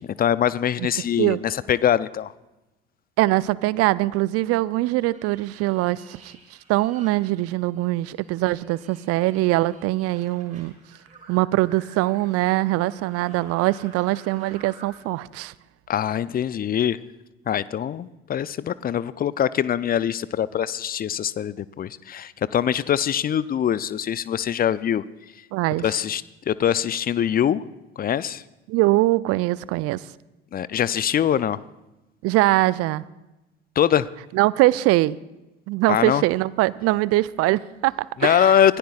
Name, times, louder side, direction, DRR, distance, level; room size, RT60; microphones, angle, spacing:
voice 1, 0.0-2.3 15.9-17.0 17.5-25.0 25.8-27.6 28.0-28.4 30.5-31.6 33.8-34.1 35.9-36.2 38.2-38.8, left 9 dB, 30° left, 18 dB, 0.6 m, -23 dB
voice 2, 3.2-6.3 6.7-10.7 11.3-15.5 25.5-25.9 28.7-30.1 32.2-33.0 34.3-35.2 35.7-38.6, right 18 dB, 50° right, 20 dB, 0.5 m, -22 dB
sound 1, 5.1-7.9 8.1-14.9, right 3 dB, 25° right, 6.2 m, -51 dB
25.0 x 17.5 x 2.4 m, 1.0 s
figure-of-eight pair, 60°, 32 cm